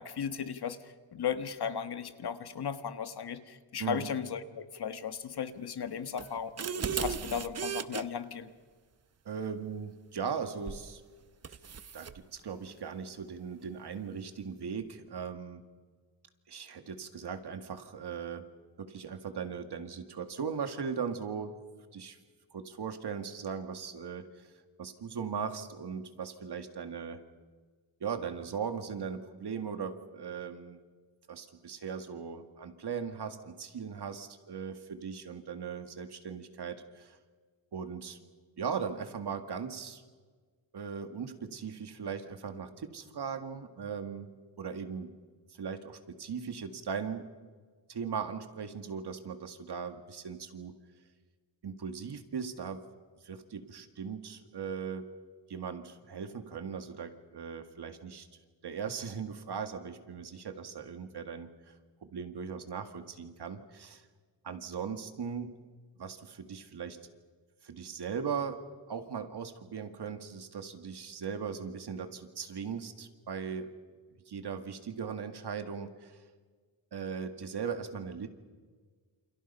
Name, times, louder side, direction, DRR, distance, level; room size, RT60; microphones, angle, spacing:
voice 1, 0.0-6.7 7.0-8.5, left 7 dB, 55° left, 9 dB, 1.5 m, -36 dB
sound 1, 6.2-8.0 10.7-10.9 11.4-12.2, right 6 dB, 35° right, 0.8 m, -36 dB
voice 2, 9.3-11.0 11.9-15.6 16.5-18.5 18.8-21.5 21.9-22.2 22.5-24.5 24.8-27.2 28.0-30.8 31.3-37.2 37.7-38.2 38.6-40.0 40.7-45.2 45.5-47.3 47.9-50.7 51.6-52.8 53.2-55.1 55.5-58.3 58.6-64.1 64.4-65.5 66.0-67.0 67.6-73.7 74.3-76.2 76.9-78.3, right 6 dB, 60° right, 7 dB, 2.2 m, -39 dB
29.0 x 27.5 x 5.6 m, 1.5 s
wide cardioid pair, 155°, 45 cm